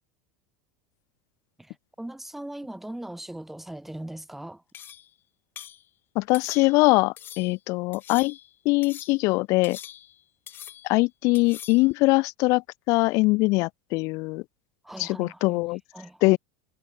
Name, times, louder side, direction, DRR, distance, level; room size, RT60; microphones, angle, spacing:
voice 1, 1.6-4.6 14.8-15.6 15.9-16.4, right 1 dB, 5° right, 1.3 m, -39 dB
sound 1, 4.7-5.1 5.6-5.8 6.3-6.9 7.2-7.6 7.9-8.5 8.8-9.3 9.6-10.2 10.5-11.0 11.3-11.9, left 11 dB, 30° left, 3.8 m, -43 dB
voice 2, 6.2-8.4 8.6-9.8 10.8-14.4 15.0-15.8 16.2-16.4, left 24 dB, 45° left, 0.8 m, -22 dB
supercardioid pair, 155°, 7 cm